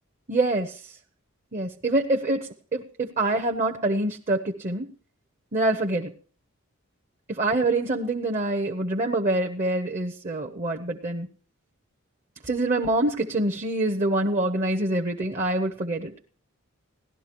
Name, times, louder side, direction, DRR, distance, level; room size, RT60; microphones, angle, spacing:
voice 1, 0.3-0.7 1.5-4.9 5.5-6.1 7.3-11.3 12.4-16.1, right 2 dB, 35° right, 4 dB, 0.8 m, -25 dB
17.5 x 12.0 x 2.9 m, 0.40 s
head